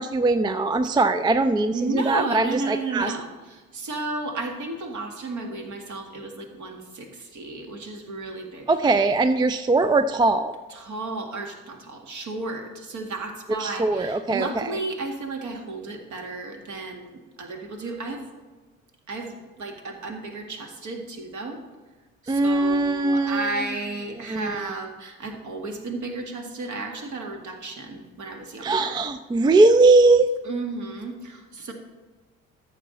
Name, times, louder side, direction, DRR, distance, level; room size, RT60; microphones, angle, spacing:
voice 1, 0.0-3.1 8.7-10.6 13.6-14.7 22.3-23.6 24.3-24.7 28.6-30.3, right 3 dB, 10° right, 11 dB, 0.4 m, -20 dB
voice 2, 1.7-9.2 10.7-18.3 19.1-21.6 22.2-29.0 30.4-31.7, right 3 dB, 45° right, 4 dB, 1.9 m, -33 dB
13.5 x 6.9 x 4.1 m, 1.3 s
figure-of-eight pair, 50°, 40 cm